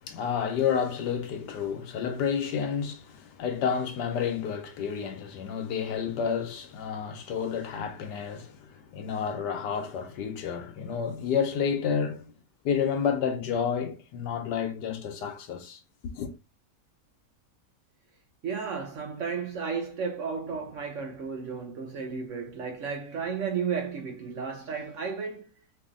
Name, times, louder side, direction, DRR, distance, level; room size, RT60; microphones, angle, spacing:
voice 1, 0.0-12.3 12.6-16.3, left 7 dB, 85° left, 1.4 m, -30 dB
voice 2, 18.4-25.5, right 6 dB, 65° right, 0.8 m, -33 dB
3.1 x 2.8 x 3.7 m
omnidirectional pair, 1.8 m